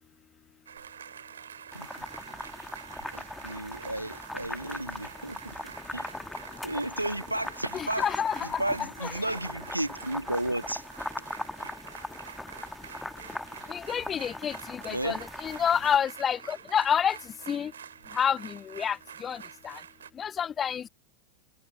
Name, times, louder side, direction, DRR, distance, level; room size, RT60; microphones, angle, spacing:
sound 1, 0.7-20.1, right 8 dB, 65° right, 2.7 m, -47 dB
sound 2, 1.7-16.0, left 1 dB, 5° left, 1.6 m, -40 dB
voice 1, 3.1-5.5 5.9-6.1 6.6-8.1 8.4-10.8 14.9-15.2, right 1 dB, 85° right, 1.3 m, -33 dB
voice 2, 7.7-8.6 9.0-9.1 13.7-17.2 17.5-17.7 18.1-19.8 20.2-20.9, left 8 dB, 25° left, 0.5 m, -29 dB
figure-of-eight pair, 90°, 0 cm